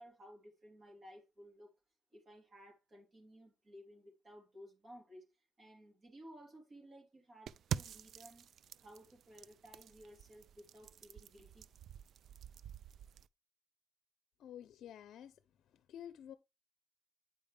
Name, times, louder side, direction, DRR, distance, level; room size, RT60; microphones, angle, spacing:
voice 1, 0.0-1.7 2.1-8.5 8.8-11.7, equal, 40° right, 3.2 m, -57 dB
sound 1, 7.5-13.3, right 9 dB, 65° right, 0.3 m, -47 dB
voice 2, 14.4-15.3 15.9-16.3, left 10 dB, 75° left, 0.6 m, -50 dB
8.6 x 5.1 x 3.3 m
cardioid pair, 90°, 0 cm